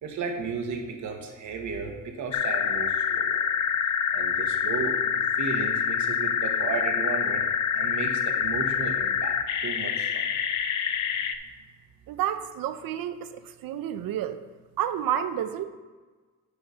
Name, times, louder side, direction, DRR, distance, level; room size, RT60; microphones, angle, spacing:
voice 1, 0.0-3.4 4.1-7.4 7.7-9.4 9.6-10.4, right 5 dB, 55° right, 3 dB, 1.4 m, -34 dB
sound 1, 2.3-11.3, left 8 dB, 55° left, 0.7 m, -26 dB
voice 2, 12.1-14.4 14.8-15.6, right 10 dB, 80° right, 11 dB, 0.7 m, -30 dB
10.0 x 4.4 x 5.7 m, 1.4 s
cardioid pair, 165°, 34 cm